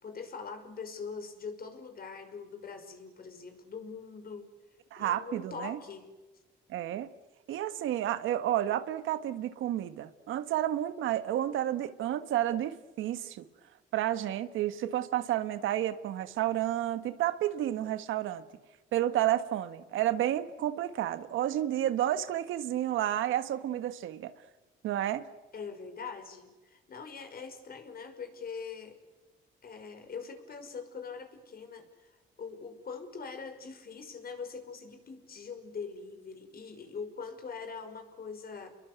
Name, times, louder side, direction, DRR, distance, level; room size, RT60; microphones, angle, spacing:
voice 1, 0.0-4.5 5.0-6.1 25.5-29.0 29.6-32.1 32.4-38.7, left 5 dB, 50° left, 5.7 m, -43 dB
voice 2, 4.9-5.8 6.7-7.1 7.5-13.4 13.9-18.4 18.9-24.3 24.8-25.3, right 12 dB, 85° right, 1.6 m, -31 dB
29.5 x 22.5 x 8.3 m
cardioid pair, 90°, 20 cm